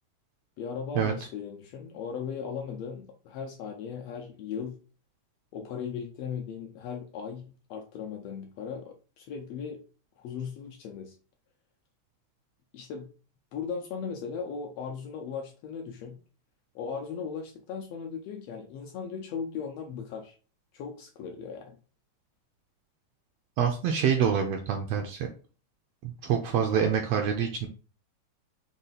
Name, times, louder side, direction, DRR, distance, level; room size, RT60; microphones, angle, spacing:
voice 1, 0.6-4.8 5.5-9.8 10.2-11.2 12.7-13.1 13.5-16.2 16.7-20.4 20.7-21.8, left 6 dB, 80° left, 3 dB, 1.5 m, -37 dB
voice 2, 23.6-25.3 26.0-27.7, right 7 dB, 80° right, 4 dB, 1.5 m, -26 dB
5.1 x 2.3 x 3.9 m, 0.37 s
omnidirectional pair, 3.3 m